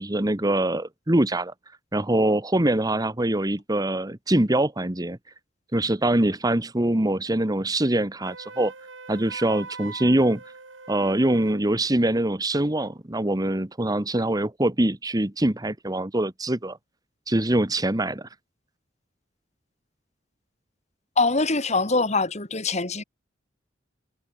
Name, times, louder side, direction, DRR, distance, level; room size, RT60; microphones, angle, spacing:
voice 1, 0.0-1.5 1.9-5.2 5.7-8.7 9.1-10.4 10.9-16.8 17.3-18.3, right 1 dB, 20° right, 1.2 m, -23 dB
Wind instrument woodwind instrument, 8.2-11.6, right 4 dB, 85° right, 4.6 m, -42 dB
voice 2, 21.2-23.0, left 3 dB, 35° left, 3.0 m, -23 dB
head